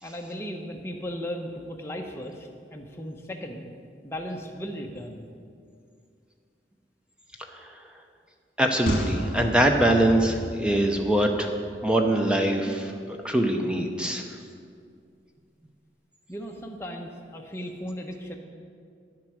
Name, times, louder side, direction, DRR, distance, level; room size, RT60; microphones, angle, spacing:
voice 1, 0.0-3.7 4.0-5.3 16.3-18.4, equal, 15° left, 1 dB, 0.9 m, -36 dB
voice 2, 8.6-11.5 11.8-12.9 13.2-14.2, right 1 dB, 5° right, 3 dB, 0.6 m, -23 dB
sound 1, 8.9-12.3 12.6-12.7, equal, 65° left, 1.6 m, -33 dB
9.9 x 7.5 x 6.2 m, 2.3 s
head